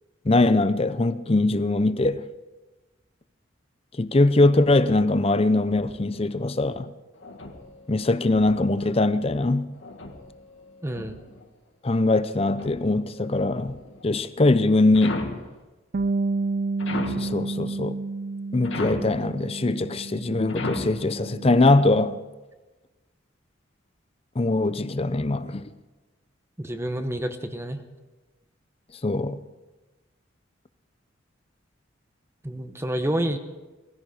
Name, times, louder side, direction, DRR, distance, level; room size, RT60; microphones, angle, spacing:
voice 1, 0.2-2.2 4.0-6.9 7.9-9.7 11.8-13.8 14.0-15.3 17.1-18.0 18.5-22.2 24.4-25.7 29.0-29.4, left 2 dB, 30° left, 0.6 m, -22 dB
sound 1, 5.3-6.3 7.2-8.9 9.8-11.4 12.3-14.0 14.9-15.5 16.8-17.4 18.6-19.2 20.5-21.0, left 2 dB, 75° left, 1.9 m, -36 dB
voice 2, 10.8-11.2 26.6-27.8 32.4-33.4, right 1 dB, 15° right, 0.9 m, -28 dB
Bass guitar, 15.9-22.2, right 3 dB, 45° right, 0.4 m, -31 dB
18.5 x 15.0 x 5.0 m
head